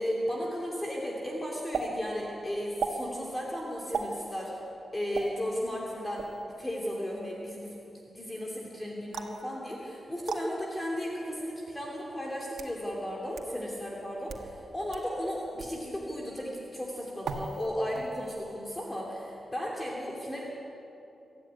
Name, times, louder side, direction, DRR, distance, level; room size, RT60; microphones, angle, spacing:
voice 1, 0.0-4.5 4.9-6.2 6.6-7.7 8.1-20.4, equal, 15° left, -3 dB, 2.8 m, -35 dB
sound 1, 1.7-1.9 2.8-3.0 3.9-4.1 5.1-5.3 6.2-6.4 9.1-9.4 10.3-10.4 11.4-11.5 12.3-12.8 13.4-13.5 14.2-14.5 14.9-15.0 15.6-15.8 17.2-17.7 17.9-18.4, right 5 dB, 90° right, 1.9 m, -35 dB
24.5 x 13.0 x 9.6 m, 2.9 s
wide cardioid pair, 150°, 0 cm